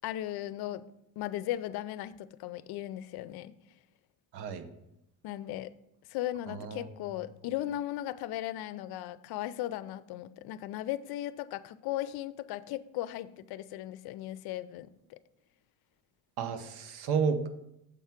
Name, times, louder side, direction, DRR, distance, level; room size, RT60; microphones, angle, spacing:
voice 1, 0.0-0.8 1.2-3.5 5.2-5.7 6.1-15.2, left 13 dB, 70° left, 15 dB, 0.5 m, -37 dB
voice 2, 4.3-4.6 6.5-6.9 16.4-17.5, right 6 dB, 80° right, 9 dB, 0.9 m, -31 dB
7.1 x 4.6 x 5.8 m, 0.83 s
cardioid pair, 145°, 39 cm